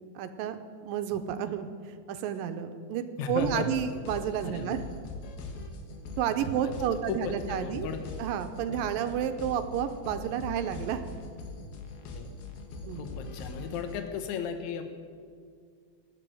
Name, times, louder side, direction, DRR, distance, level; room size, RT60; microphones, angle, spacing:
voice 1, 0.2-0.6 0.8-1.7 2.1-4.8 6.2-7.9 8.2-11.0 12.9-13.1, right 9 dB, 75° right, 9 dB, 2.3 m, -31 dB
voice 2, 3.2-3.7 4.4-4.7 6.6-6.7 7.1-8.0 8.7-8.8 12.1-12.3 12.9-14.8, left 7 dB, 65° left, 6 dB, 2.1 m, -35 dB
sound 1, 3.4-14.1, left 2 dB, 85° left, 3.3 m, -42 dB
15.5 x 11.0 x 7.8 m, 2.1 s
omnidirectional pair, 4.4 m